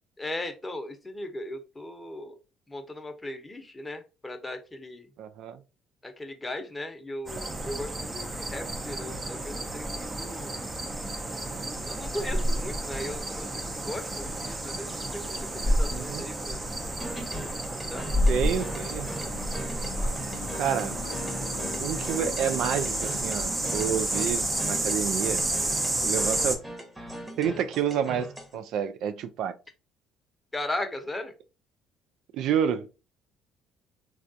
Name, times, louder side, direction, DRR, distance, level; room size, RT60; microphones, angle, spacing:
voice 1, 0.2-2.4 2.7-5.1 6.0-10.6 11.9-16.6 17.7-18.1 30.5-31.3, left 1 dB, 15° left, 0.7 m, -37 dB
voice 2, 5.2-5.6 15.9-16.3 18.3-19.1 20.5-21.0 21.8-25.4 26.0-26.6 27.4-29.5 32.3-32.9, right 8 dB, 70° right, 0.3 m, -29 dB
sound 1, 7.3-26.6, right 1 dB, 25° right, 0.6 m, -30 dB
sound 2, 17.0-28.6, right 1 dB, 10° right, 1.0 m, -40 dB
sound 3, 18.0-24.4, left 7 dB, 85° left, 0.4 m, -45 dB
3.3 x 2.3 x 2.6 m
hypercardioid pair, 60°, 0 cm